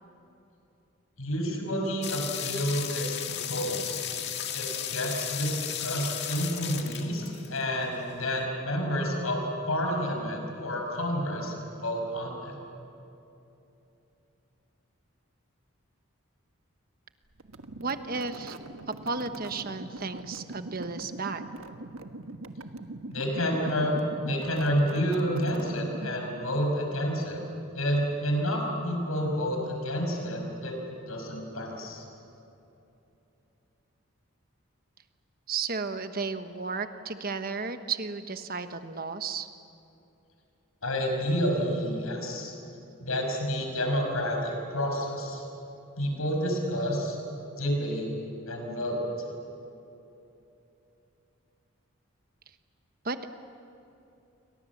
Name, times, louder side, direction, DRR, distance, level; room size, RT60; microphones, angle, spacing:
voice 1, 1.2-4.0 4.5-11.5 11.8-12.6 23.1-23.9 24.2-27.4 27.7-30.8 31.1-32.0 40.8-42.5 43.0-45.4 46.0-47.2 47.6-48.1 48.5-49.0, equal, 85° left, 2 dB, 6.1 m, -29 dB
sound 1, 2.0-7.9, left 9 dB, 55° left, 2.0 m, -35 dB
sound 2, 17.4-26.4, right 2 dB, 85° right, 1.4 m, -42 dB
voice 2, 17.8-18.6 19.0-21.4 35.5-39.5 53.0-53.3, right 4 dB, 45° right, 8 dB, 1.2 m, -33 dB
29.5 x 24.0 x 7.3 m, 2.9 s
head